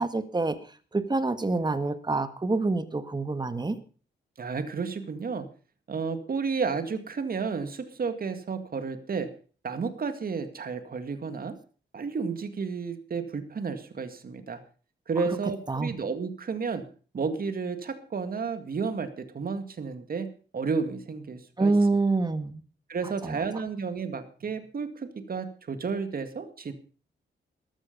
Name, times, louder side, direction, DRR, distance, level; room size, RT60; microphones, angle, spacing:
voice 1, 0.0-3.8 15.7-15.9 21.6-22.6 23.2-23.4, right 3 dB, 25° right, 12 dB, 1.6 m, -27 dB
voice 2, 4.4-5.5 5.9-9.3 9.6-11.6 11.9-14.6 15.1-16.8 17.1-21.7 22.9-26.7, right 5 dB, 55° right, 10 dB, 2.1 m, -32 dB
14.0 x 12.5 x 5.3 m, 0.39 s
cardioid pair, 80°, 18 cm